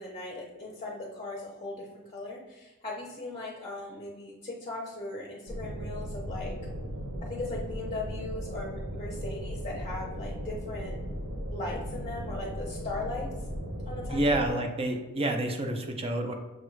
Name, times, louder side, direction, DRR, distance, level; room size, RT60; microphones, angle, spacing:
voice 1, 0.0-6.5 7.2-10.9 11.5-13.3 13.9-14.7, left 2 dB, 30° left, -2 dB, 0.6 m, -38 dB
sound 1, 5.5-14.5, equal, 70° right, 0.7 m, -37 dB
voice 2, 14.1-16.4, right 1 dB, 25° right, 4 dB, 0.5 m, -28 dB
6.2 x 2.4 x 3.1 m, 1.1 s
head